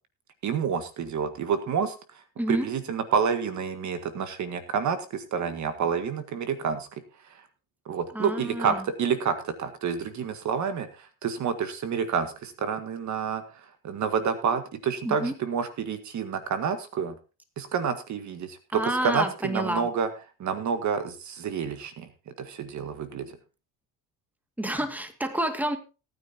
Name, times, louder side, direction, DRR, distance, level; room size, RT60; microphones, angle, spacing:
voice 1, 0.4-1.9 2.5-6.9 7.8-13.4 13.8-17.1 17.6-20.1 20.4-22.1 22.4-23.3, right 6 dB, 55° right, 9 dB, 1.8 m, -28 dB
voice 2, 8.1-8.8 15.0-15.3 18.7-19.9 24.6-25.8, right 1 dB, 5° right, 7 dB, 2.0 m, -29 dB
19.0 x 9.6 x 2.8 m, 0.31 s
cardioid pair, 95°, 36 cm